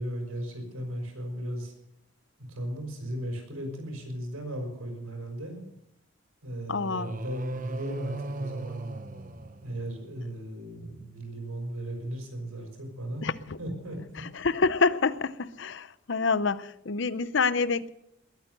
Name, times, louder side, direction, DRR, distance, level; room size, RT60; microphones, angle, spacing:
voice 1, 0.0-1.7 2.5-5.6 6.4-8.9 9.6-13.3 13.6-14.2, right 1 dB, 90° right, 5.7 m, -36 dB
voice 2, 6.7-7.1 13.2-13.6 14.2-17.9, left 4 dB, 55° left, 0.6 m, -27 dB
sound 1, 6.9-10.2, right 2 dB, 40° right, 0.9 m, -38 dB
21.0 x 9.0 x 6.7 m
head